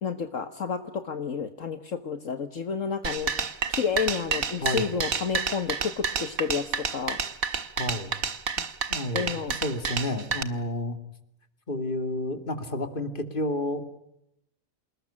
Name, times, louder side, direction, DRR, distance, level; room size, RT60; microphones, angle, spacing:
voice 1, 0.0-3.3 3.7-7.2 9.1-9.6, left 6 dB, 65° left, 9 dB, 1.8 m, -30 dB
sound 1, 3.0-10.4, right 6 dB, 85° right, 2.0 m, -29 dB
voice 2, 4.6-5.0 7.8-8.1 8.9-11.0 11.7-13.8, left 1 dB, 40° left, 9 dB, 2.7 m, -30 dB
28.0 x 20.0 x 10.0 m, 0.82 s
omnidirectional pair, 1.4 m